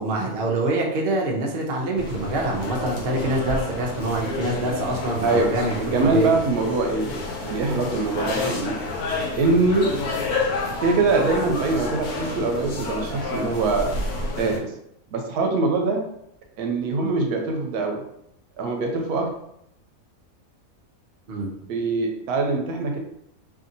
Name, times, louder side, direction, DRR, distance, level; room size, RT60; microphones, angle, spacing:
voice 1, 0.0-6.3 21.3-21.5, right 2 dB, 60° right, -1 dB, 0.6 m, -25 dB
sound 1, 2.0-14.6, left 3 dB, 80° left, 1.2 m, -30 dB
voice 2, 5.2-5.5 5.8-7.2 7.4-8.8 9.4-10.0 10.8-14.0 14.4-14.7 15.1-16.0 16.6-18.0 18.6-19.3 21.7-23.0, right 3 dB, 80° right, 3 dB, 1.0 m, -23 dB
2.7 x 2.6 x 2.6 m, 0.76 s
omnidirectional pair, 1.6 m